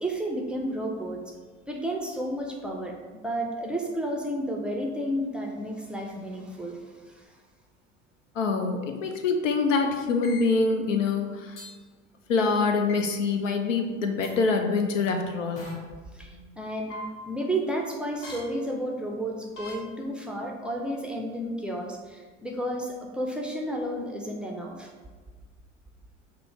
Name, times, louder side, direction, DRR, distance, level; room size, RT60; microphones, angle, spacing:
voice 1, 0.0-1.3 1.7-2.9 3.2-7.3 16.1-16.9 17.3-24.9, right 1 dB, 5° right, -1 dB, 0.5 m, -32 dB
voice 2, 8.4-11.6 12.3-15.7, left 4 dB, 70° left, 5 dB, 0.6 m, -25 dB
sound 1, 10.2-10.4 11.6-11.7 12.9-13.0 14.2-14.3 15.6-15.7 16.9-17.1 18.2-18.4 19.6-19.7, left 2 dB, 50° left, 1.4 m, -38 dB
5.3 x 2.1 x 4.2 m, 1.4 s
figure-of-eight pair, 65°, 39 cm